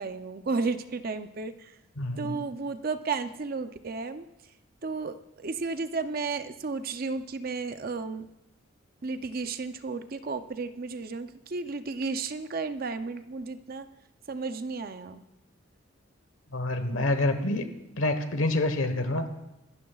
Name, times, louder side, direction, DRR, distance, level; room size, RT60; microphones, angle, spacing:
voice 1, 0.0-1.7 2.2-4.3 4.8-8.3 9.0-13.9 14.3-15.2, right 4 dB, 45° right, 10 dB, 0.5 m, -33 dB
voice 2, 2.0-2.4 16.5-17.7 18.0-19.3, left 2 dB, 90° left, 8 dB, 1.2 m, -27 dB
24.5 x 12.5 x 2.4 m, 0.89 s
head